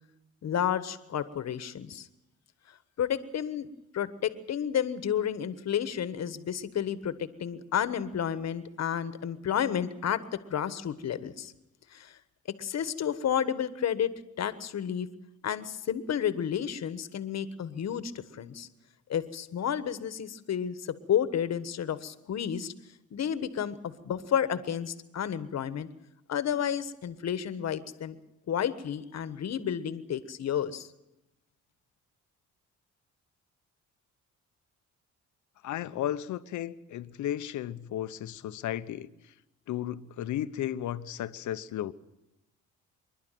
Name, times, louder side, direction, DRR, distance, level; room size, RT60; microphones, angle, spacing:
voice 1, 0.4-2.1 3.0-3.7 3.9-10.2 10.5-11.5 11.9-12.1 12.6-14.1 14.4-15.1 15.4-18.7 19.1-22.7 23.1-25.9 26.3-28.1 28.5-30.9, left 9 dB, 60° left, 1.4 m, -31 dB
voice 2, 35.6-39.1 39.7-41.9, left 11 dB, 75° left, 1.0 m, -34 dB
25.5 x 11.5 x 9.2 m
cardioid pair, 90°, 30 cm